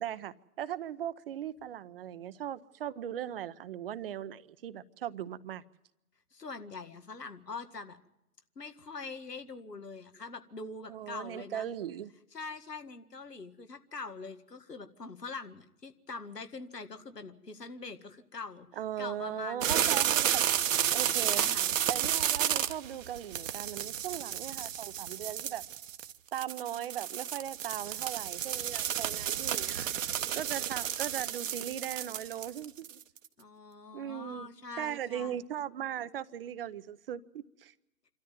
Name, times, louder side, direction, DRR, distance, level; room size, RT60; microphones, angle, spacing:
voice 1, 0.0-5.6 10.9-12.1 18.8-21.4 21.9-26.0 26.3-29.9 30.3-33.0 33.9-34.5 34.8-37.7, right 10 dB, 40° right, 0.7 m, -39 dB
voice 2, 6.3-8.0 8.6-11.7 12.3-18.7 19.0-20.1 21.3-21.7 33.4-35.4, left 4 dB, 90° left, 2.0 m, -43 dB
sound 1, 19.6-33.3, right 10 dB, 55° right, 1.1 m, -31 dB
26.5 x 13.5 x 9.3 m
figure-of-eight pair, 130°, 47 cm